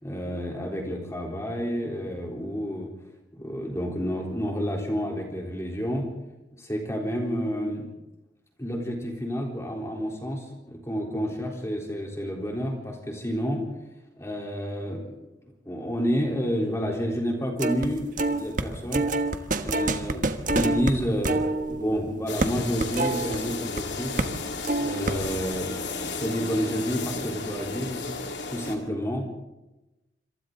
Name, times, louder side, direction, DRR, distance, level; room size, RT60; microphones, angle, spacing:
voice 1, 0.0-2.9 3.3-6.1 6.6-7.9 8.6-13.6 14.2-15.1 15.7-19.1 19.6-20.2 20.5-24.3 24.8-28.0 28.5-29.3, equal, 15° left, 0 dB, 3.8 m, -30 dB
sound 1, 17.6-17.9 18.2-23.8 24.2-24.4 24.6-25.5, right 2 dB, 45° right, 1.3 m, -27 dB
sound 2, 22.3-28.8, left 3 dB, 70° left, 2.8 m, -34 dB
27.0 x 26.5 x 3.9 m, 1.0 s
head